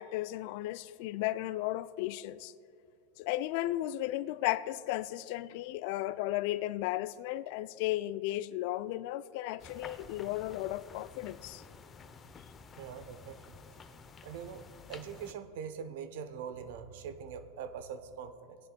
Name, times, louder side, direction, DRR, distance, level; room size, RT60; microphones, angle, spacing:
voice 1, 0.0-2.5 3.2-11.6, left 15 dB, 60° left, 16 dB, 0.3 m, -35 dB
sound 1, 9.6-15.3, left 5 dB, 30° left, 0.7 m, -51 dB
voice 2, 12.8-13.6 14.2-14.6 14.9-18.6, right 7 dB, 65° right, 10 dB, 0.8 m, -43 dB
18.5 x 10.5 x 2.3 m, 2.5 s
hypercardioid pair, 95°, 0 cm